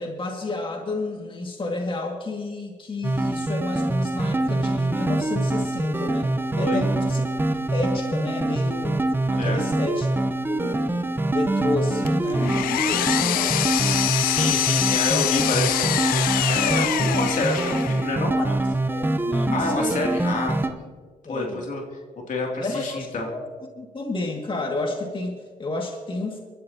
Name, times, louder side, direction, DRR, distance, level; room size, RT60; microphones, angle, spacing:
voice 1, 0.0-6.3 6.6-7.2 7.7-9.0 9.3-10.1 10.4-13.6 18.4-20.0 21.3-21.6 22.6-23.5 23.8-26.4, left 2 dB, 35° left, 1 dB, 2.1 m, -31 dB
sound 1, 3.0-20.7, right 2 dB, 15° right, 1.0 m, -24 dB
Power tool, 12.1-18.1, left 13 dB, 85° left, 0.5 m, -25 dB
voice 2, 14.2-18.3 19.5-20.8 21.3-21.8 22.3-23.3, left 2 dB, 60° left, 0 dB, 2.8 m, -28 dB
22.0 x 12.5 x 2.9 m, 1.5 s
supercardioid pair, 55°, 15 cm